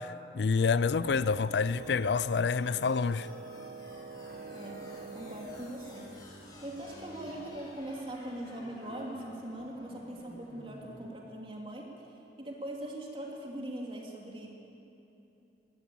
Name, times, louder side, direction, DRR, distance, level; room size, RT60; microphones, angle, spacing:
voice 1, 0.0-3.3, left 5 dB, 75° left, 0.4 m, -28 dB
Wind instrument woodwind instrument, 0.6-6.3, right 4 dB, 80° right, 0.7 m, -46 dB
Piano, 0.8-7.7, equal, 55° right, 3.7 m, -53 dB
sound 1, 1.0-11.0, left 1 dB, 20° left, 3.2 m, -53 dB
voice 2, 4.5-6.1 6.6-11.9 12.4-14.6, right 1 dB, 30° right, 3.1 m, -41 dB
21.0 x 16.5 x 8.7 m
head